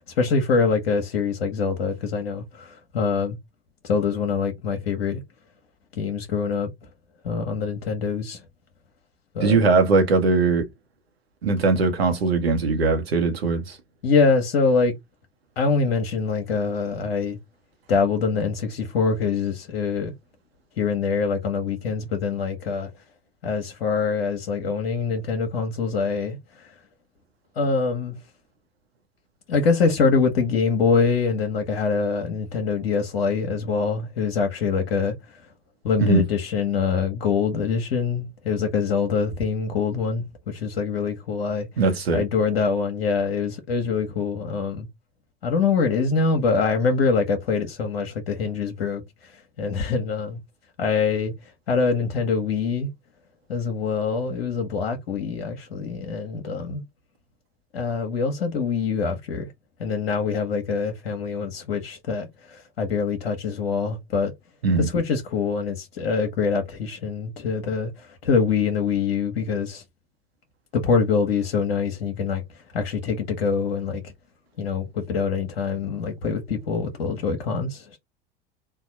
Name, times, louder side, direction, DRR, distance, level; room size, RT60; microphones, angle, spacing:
voice 1, 0.1-3.4 3.8-5.2 5.9-6.7 7.2-8.4 9.3-9.6 14.0-14.9 15.6-17.4 17.9-20.1 20.8-22.9 23.4-26.7 27.6-28.2 29.5-35.5 35.8-41.7 42.1-44.9 45.4-50.4 50.8-52.9 53.5-56.8 57.7-59.5 59.8-64.3 64.8-69.8 70.7-74.1 74.6-78.0, left 5 dB, 80° left, 0.9 m, -24 dB
voice 2, 9.4-10.7 11.4-13.8 36.0-36.2 41.8-42.2 64.6-64.9, right 3 dB, 85° right, 1.2 m, -20 dB
3.5 x 2.3 x 4.3 m
hypercardioid pair, 80°, 30 cm